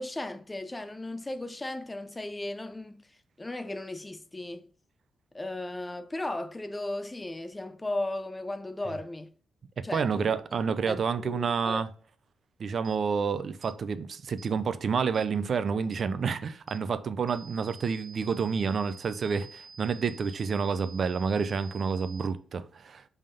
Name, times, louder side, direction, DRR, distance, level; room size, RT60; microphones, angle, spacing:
voice 1, 0.0-3.0 3.4-4.7 5.3-9.3 9.8-10.2 10.9-11.8, left 2 dB, 10° left, 0.5 m, -36 dB
voice 2, 9.9-11.9 12.6-23.0, right 6 dB, 40° right, 0.5 m, -29 dB
sound 1, 12.8-13.0 13.6-13.8 14.4-14.5 15.1-15.3 15.9-16.1 16.7-16.8 17.3-22.3, right 4 dB, 25° right, 0.9 m, -50 dB
5.5 x 3.5 x 5.3 m
wide cardioid pair, 170°, 0 cm